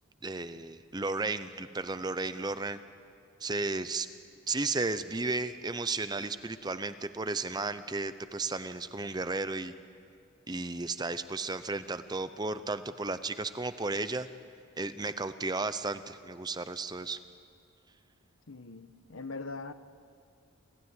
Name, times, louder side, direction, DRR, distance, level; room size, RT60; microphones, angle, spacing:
voice 1, 0.2-2.8 3.4-4.1 4.5-9.7 10.5-14.3 14.8-17.2, right 3 dB, 20° right, 0.7 m, -34 dB
voice 2, 18.5-19.7, left 3 dB, 75° left, 1.1 m, -41 dB
28.5 x 15.0 x 9.7 m
head